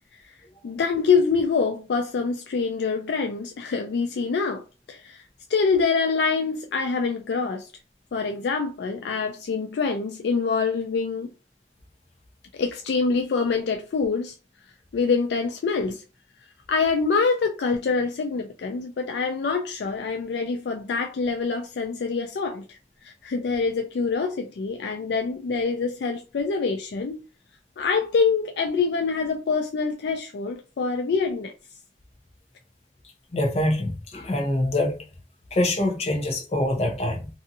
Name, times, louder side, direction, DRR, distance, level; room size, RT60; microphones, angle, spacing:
voice 1, 0.6-4.6 4.9-5.2 5.5-7.7 8.1-11.3 12.5-14.4 14.9-16.0 16.7-22.8 23.0-27.2 27.8-31.5, left 5 dB, 65° left, 0.4 m, -25 dB
voice 2, 33.3-35.0 35.5-37.3, left 1 dB, 35° left, 0.8 m, -25 dB
2.7 x 2.5 x 2.6 m
head